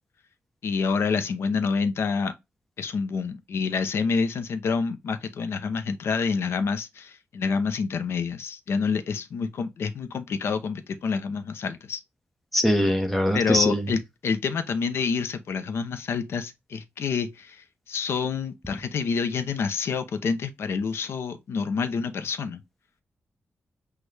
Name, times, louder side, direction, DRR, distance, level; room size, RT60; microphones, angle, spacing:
voice 1, 0.6-2.3 2.8-12.0 13.3-22.6, left 5 dB, 70° left, 0.6 m, -28 dB
voice 2, 12.5-13.9, equal, ahead, 0.9 m, -22 dB
6.2 x 2.3 x 3.2 m
wide cardioid pair, 145°, 4 cm